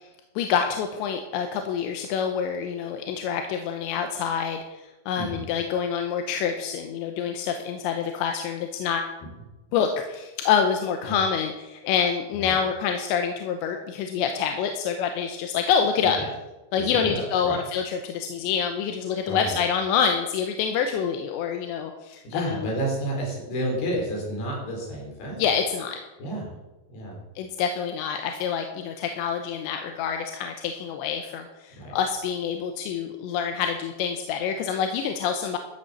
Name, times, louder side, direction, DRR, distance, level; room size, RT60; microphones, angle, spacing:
voice 1, 0.4-4.8 5.1-9.1 9.7-16.2 16.7-22.7 25.4-26.0 27.4-35.6, left 7 dB, 80° left, 5 dB, 3.1 m, -27 dB
voice 2, 5.2-5.5 11.1-11.2 12.3-12.5 16.2-16.3 16.8-17.6 19.3-19.6 22.2-25.5 26.2-26.5 26.9-27.2 31.8-31.9, right 1 dB, 60° left, -1 dB, 5.6 m, -30 dB
13.0 x 8.0 x 7.2 m, 1.1 s
omnidirectional pair, 5.3 m